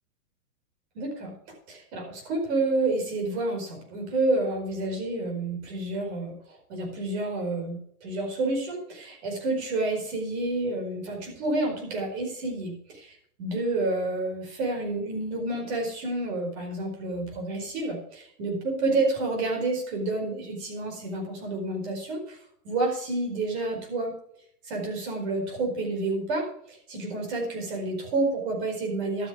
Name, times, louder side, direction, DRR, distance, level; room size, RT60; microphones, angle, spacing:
voice 1, 0.9-1.3 1.7-22.4 22.6-24.1 24.6-29.3, right 2 dB, 45° right, 1 dB, 4.8 m, -29 dB
12.5 x 7.8 x 6.2 m, 0.68 s
hypercardioid pair, 155°, 46 cm